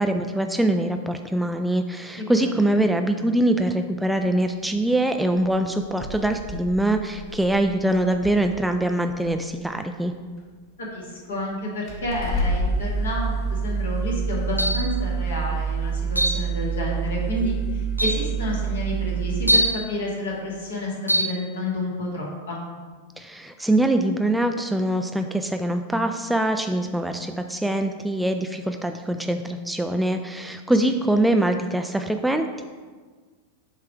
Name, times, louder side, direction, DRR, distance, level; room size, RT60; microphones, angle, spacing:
voice 1, 0.0-10.1 23.2-32.6, right 1 dB, 5° right, 6 dB, 0.3 m, -23 dB
voice 2, 2.2-2.6 10.8-22.6, left 1 dB, 65° left, -3 dB, 1.8 m, -30 dB
sound 1, 4.7-4.9 5.4-5.5 5.8-8.6 9.1-9.5 10.4-10.5 11.3-11.4 11.9-19.5, right 5 dB, 35° left, 1.9 m, -28 dB
sound 2, 14.6-14.9 16.2-16.4 17.4-17.5 18.0-18.3 19.5-19.8 21.1-21.3, right 1 dB, 90° left, 0.5 m, -22 dB
7.8 x 3.2 x 4.8 m, 1.5 s
figure-of-eight pair, 90°, 0 cm